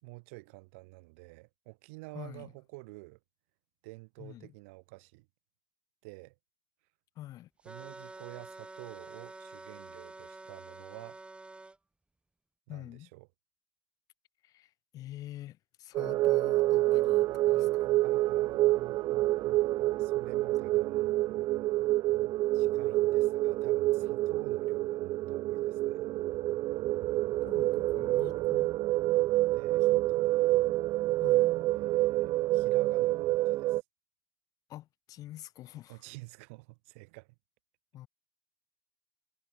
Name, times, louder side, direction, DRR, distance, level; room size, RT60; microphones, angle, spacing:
voice 1, 0.0-3.2 3.8-5.3 6.0-6.4 7.6-11.2 12.7-13.3 18.0-18.9 20.0-21.2 22.5-26.1 29.5-30.5 31.7-33.8 35.9-37.3, right 28 dB, 85° right, 4.2 m, -49 dB
voice 2, 2.1-2.5 4.2-4.5 7.1-7.5 12.7-13.1 14.4-17.9 27.4-28.7 31.2-31.6 34.7-36.0 37.9-38.1, left 14 dB, 65° left, 1.2 m, -46 dB
sound 1, 7.6-11.8, right 2 dB, 15° right, 3.0 m, -48 dB
sound 2, 15.9-33.8, right 17 dB, 65° right, 0.4 m, -27 dB
supercardioid pair, 80°, 7 cm